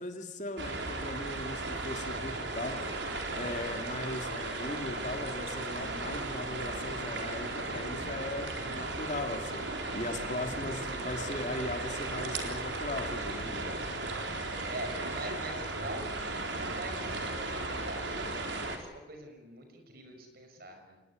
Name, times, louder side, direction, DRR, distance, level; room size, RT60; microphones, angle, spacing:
voice 1, 0.0-3.0 3.3-13.6, left 2 dB, 45° left, 5 dB, 3.3 m, -38 dB
sound 1, 0.6-18.8, right 2 dB, 85° right, 3.9 m, -36 dB
voice 2, 10.4-11.0 14.5-21.0, right 1 dB, 55° right, 5 dB, 5.7 m, -44 dB
27.0 x 20.5 x 9.9 m, 1.0 s
head